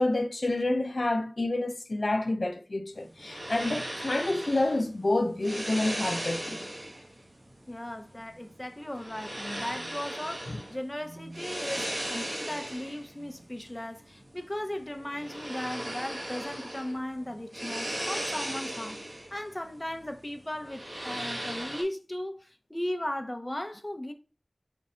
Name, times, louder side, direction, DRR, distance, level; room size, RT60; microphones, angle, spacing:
voice 1, 0.0-6.6 10.5-10.6, left 2 dB, 80° left, 0.4 m, -28 dB
sound 1, 2.9-21.8, right 1 dB, 80° right, 1.2 m, -38 dB
voice 2, 7.7-24.1, left 1 dB, 25° left, 0.6 m, -37 dB
5.2 x 2.4 x 4.2 m
wide cardioid pair, 40°, 0 cm